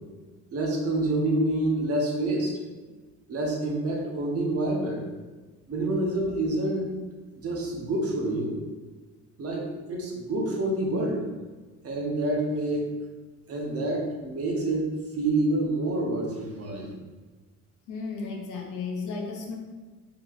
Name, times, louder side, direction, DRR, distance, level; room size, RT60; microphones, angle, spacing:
voice 1, 0.5-2.6 3.3-5.1 5.7-7.0 7.4-8.6 9.4-11.3 11.8-12.9 13.5-16.9, right 1 dB, 50° right, -1 dB, 0.9 m, -27 dB
voice 2, 17.9-19.6, left 4 dB, 85° left, 1 dB, 0.7 m, -34 dB
4.1 x 2.9 x 2.4 m, 1.3 s
cardioid pair, 90°, 30 cm